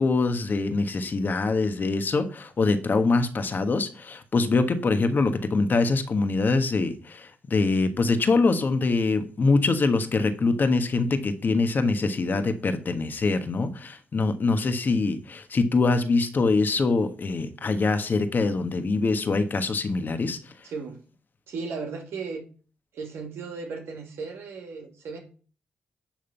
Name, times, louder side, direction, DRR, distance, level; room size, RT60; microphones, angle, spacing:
voice 1, 0.0-20.4, left 3 dB, 50° left, 1.4 m, -24 dB
voice 2, 20.6-21.0 21.5-22.4 22.9-25.2, right 4 dB, 80° right, 2.2 m, -35 dB
10.5 x 3.7 x 6.9 m
cardioid pair, 65°, 4 cm